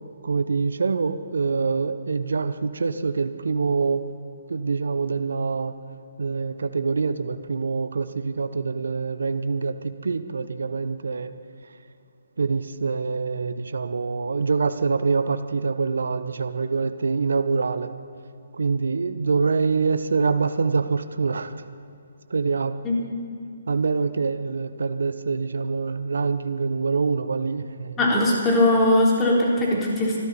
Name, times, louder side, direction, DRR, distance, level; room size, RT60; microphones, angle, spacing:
voice 1, 0.2-4.0 4.5-5.7 6.2-11.3 12.4-17.9 18.6-21.5 22.3-22.7 23.7-28.0, right 4 dB, 70° right, 11 dB, 0.8 m, -25 dB
voice 2, 28.0-30.2, left 1 dB, 15° left, -3 dB, 3.8 m, -20 dB
25.0 x 13.0 x 4.2 m, 2.5 s
figure-of-eight pair, 135°, 0 cm